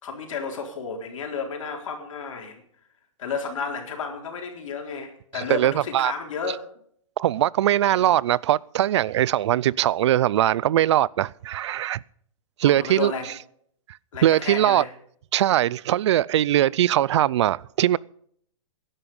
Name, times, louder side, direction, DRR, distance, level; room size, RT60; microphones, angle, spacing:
voice 1, 0.0-2.6 3.2-6.6 7.8-8.1 12.6-13.3 14.1-14.9, left 5 dB, 75° left, 4.0 m, -32 dB
voice 2, 5.4-6.1 7.2-12.0 12.6-13.1 14.2-14.8 15.3-18.0, right 12 dB, 60° right, 0.5 m, -21 dB
17.0 x 11.0 x 5.4 m
hypercardioid pair, 160°, 17 cm